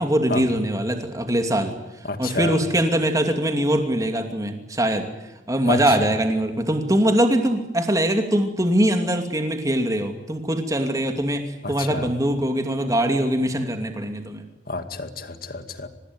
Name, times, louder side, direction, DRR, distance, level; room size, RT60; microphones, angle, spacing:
voice 1, 0.0-1.7 2.2-5.1 5.5-14.4, right 1 dB, 20° right, 5 dB, 2.7 m, -22 dB
voice 2, 2.1-2.6 5.7-5.8 11.6-12.1 14.7-15.9, left 3 dB, 55° left, 8 dB, 2.3 m, -29 dB
25.5 x 20.0 x 9.9 m, 0.99 s
head